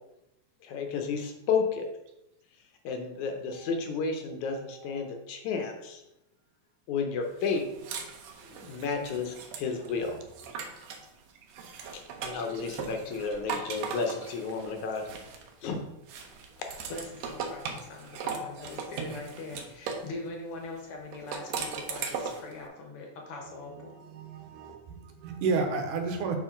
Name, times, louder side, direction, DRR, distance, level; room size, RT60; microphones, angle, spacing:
voice 1, 0.6-1.9 2.8-6.0 6.9-7.7 8.5-10.2 11.9-15.0 15.6-15.8, left 5 dB, 75° left, 4 dB, 2.1 m, -32 dB
sound 1, 7.4-11.1 11.5-15.7 16.1-20.1 21.1-22.5, right 5 dB, 70° right, 1.8 m, -38 dB
voice 2, 16.9-23.9, left 2 dB, 60° left, 1 dB, 1.6 m, -42 dB
voice 3, 23.9-26.4, right 4 dB, 90° right, 4 dB, 2.5 m, -32 dB
7.3 x 5.5 x 3.8 m, 0.87 s
omnidirectional pair, 3.6 m